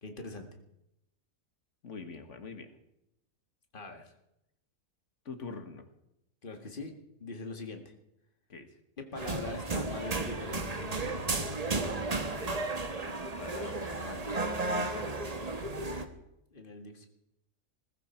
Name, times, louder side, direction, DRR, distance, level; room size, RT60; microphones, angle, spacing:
voice 1, 0.0-0.5 3.7-4.1 6.4-7.0 7.2-7.9 9.0-11.2 16.5-17.1, left 3 dB, 40° left, 4 dB, 2.1 m, -42 dB
voice 2, 1.8-2.7 5.3-5.9 8.5-8.8 13.0-15.1, left 4 dB, 60° left, 8 dB, 1.9 m, -45 dB
sound 1, 9.2-16.1, right 2 dB, 30° right, 1.3 m, -33 dB
20.0 x 14.5 x 4.5 m, 0.83 s
omnidirectional pair, 1.4 m